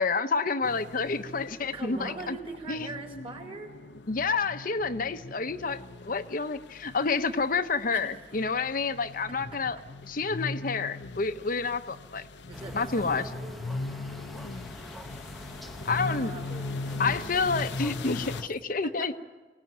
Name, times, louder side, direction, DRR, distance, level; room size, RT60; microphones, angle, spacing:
voice 1, 0.0-2.4 2.7-2.9 4.1-9.8 10.1-12.2 12.7-13.2 15.8-16.3 17.0-19.2, left 4 dB, 50° left, 8 dB, 0.8 m, -29 dB
sound 1, 0.6-18.4, left 3 dB, 80° left, 0.8 m, -40 dB
voice 2, 1.6-3.7 7.9-8.3 9.5-9.8 12.4-13.7 15.8-17.4 18.0-18.1 18.8-19.2, right 2 dB, 35° right, 2 dB, 4.4 m, -42 dB
sound 2, 12.5-18.5, equal, ahead, 0.9 m, -44 dB
25.0 x 18.0 x 9.3 m, 1.3 s
head